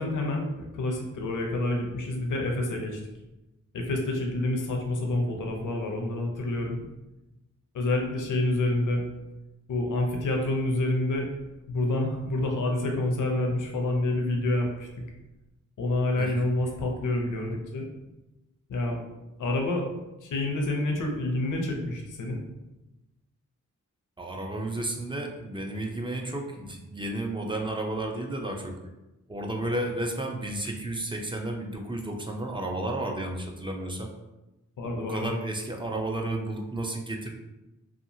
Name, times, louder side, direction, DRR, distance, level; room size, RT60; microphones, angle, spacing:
voice 1, 0.0-3.0 3.7-6.8 7.7-9.0 9.7-11.3 11.7-14.9 15.8-17.9 18.7-19.0 19.4-19.9 20.2-22.4 34.8-35.3, left 2 dB, 75° left, 1 dB, 0.6 m, -28 dB
voice 2, 24.2-28.8 29.3-34.1 34.9-37.3, right 1 dB, 15° right, 1 dB, 0.4 m, -32 dB
2.8 x 2.3 x 2.7 m, 1.0 s
cardioid pair, 70°, 31 cm